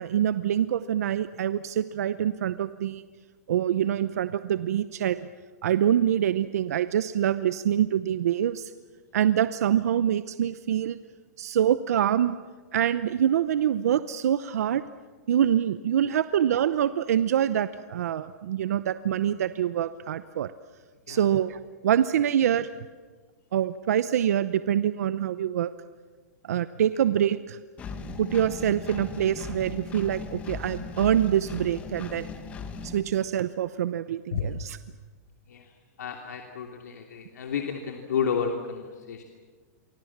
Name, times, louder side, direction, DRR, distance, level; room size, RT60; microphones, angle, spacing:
voice 1, 0.0-3.0 3.5-5.3 5.6-8.7 9.1-11.0 11.4-12.4 12.7-14.8 15.3-20.5 21.1-22.7 23.5-25.7 26.5-27.6 28.2-32.3 32.8-34.8, right 10 dB, 65° right, 13 dB, 0.8 m, -25 dB
Engine, 27.8-33.0, left 4 dB, 15° left, 1.6 m, -38 dB
voice 2, 36.0-39.2, left 7 dB, 80° left, 2 dB, 2.9 m, -31 dB
29.5 x 24.5 x 7.4 m, 1.4 s
hypercardioid pair, 170°, 9 cm